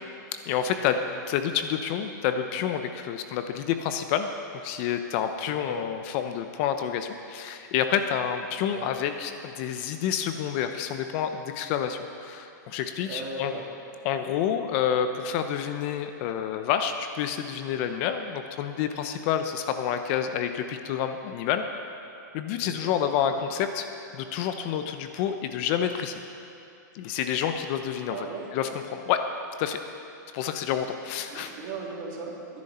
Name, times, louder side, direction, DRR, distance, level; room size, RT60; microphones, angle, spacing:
voice 1, 0.5-4.3 4.6-13.6 14.0-21.7 22.3-23.9 24.1-26.2 26.9-28.3 28.5-29.3 29.6-29.8 30.3-31.5, left 9 dB, 40° left, 7 dB, 0.8 m, -28 dB
voice 2, 5.4-5.8 8.7-8.9 13.0-13.7 22.6-22.9 28.1-28.5 31.1-32.6, right 4 dB, 45° right, -2 dB, 3.0 m, -38 dB
19.0 x 10.5 x 4.3 m, 2.8 s
hypercardioid pair, 145°, 10 cm